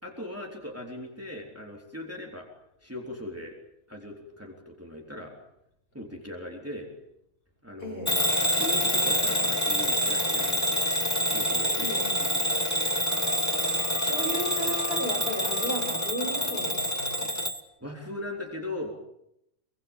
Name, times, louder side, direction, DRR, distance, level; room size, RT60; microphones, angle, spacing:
voice 1, 0.0-2.5 2.8-3.5 3.9-5.3 5.9-6.9 7.6-8.3 8.5-10.8 11.3-12.0 12.3-12.5 17.8-18.9, left 1 dB, 10° right, 0 dB, 3.6 m, -39 dB
voice 2, 7.8-8.2 11.8-12.1 14.0-17.3, equal, 45° left, 1 dB, 7.8 m, -35 dB
Bell / Alarm, 8.1-17.6, equal, 10° left, 1.6 m, -26 dB
Wind instrument woodwind instrument, 13.1-16.7, left 5 dB, 70° right, 4.4 m, -45 dB
26.5 x 24.5 x 7.4 m, 0.81 s
omnidirectional pair, 1.4 m